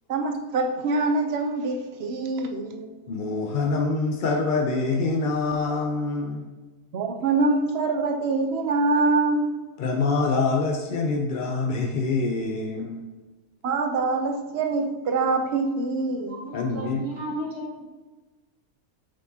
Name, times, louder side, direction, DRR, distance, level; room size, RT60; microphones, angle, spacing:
voice 1, 0.1-2.9 6.9-9.5 13.6-16.4, right 3 dB, 55° right, 5 dB, 0.7 m, -24 dB
voice 2, 3.1-6.5 9.8-13.0 16.5-17.0, left 3 dB, 65° left, 1 dB, 0.5 m, -25 dB
voice 3, 16.3-17.8, right 1 dB, 75° right, -5 dB, 2.3 m, -35 dB
7.5 x 4.5 x 2.7 m, 1.2 s
omnidirectional pair, 1.6 m